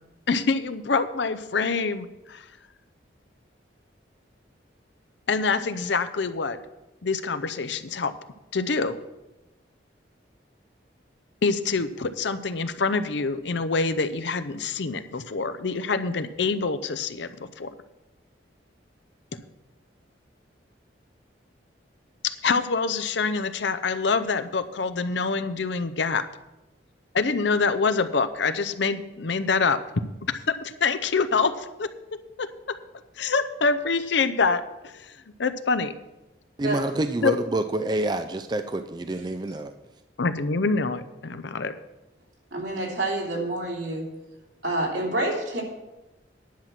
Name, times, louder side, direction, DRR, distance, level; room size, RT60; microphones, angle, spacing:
voice 1, 0.3-2.5 5.3-6.6 7.0-8.1 8.5-9.0 11.4-17.7 22.2-26.2 27.1-31.9 32.4-32.8 33.2-35.1 35.4-35.9 37.2-37.3 40.2-41.7, left 4 dB, 75° left, 12 dB, 0.6 m, -26 dB
voice 2, 36.6-39.7, right 1 dB, 20° right, 8 dB, 0.3 m, -27 dB
voice 3, 42.5-44.0 44.6-45.6, right 2 dB, 80° right, -2 dB, 3.0 m, -27 dB
10.5 x 6.0 x 7.4 m, 1.0 s
head